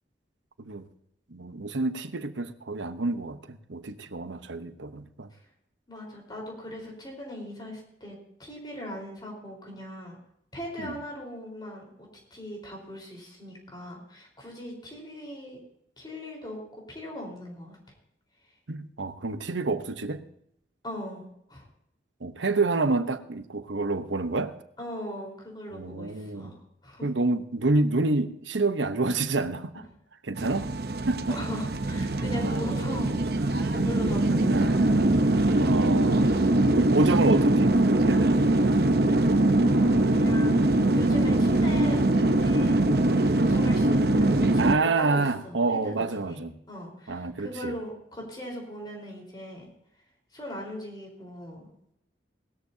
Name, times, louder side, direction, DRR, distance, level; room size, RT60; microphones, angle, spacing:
voice 1, 1.3-5.3 10.8-11.0 18.7-20.2 22.2-24.6 25.7-26.5 27.0-29.7 30.2-30.7 31.1-31.4 32.4-32.6 34.5-35.2 35.6-36.3 36.7-38.4 44.6-46.5 47.1-47.7, right 3 dB, 85° right, 0.9 m, -28 dB
voice 2, 5.9-10.2 10.5-15.6 16.0-16.6 16.9-17.8 20.8-21.7 24.8-27.1 31.3-34.6 39.3-40.6 40.9-42.1 42.4-42.9 43.2-45.9 46.3-49.7 50.3-51.7, equal, 25° left, 4.2 m, -39 dB
sound 1, 30.3-44.7, right 1 dB, 55° right, 0.8 m, -22 dB
19.0 x 13.5 x 2.8 m
head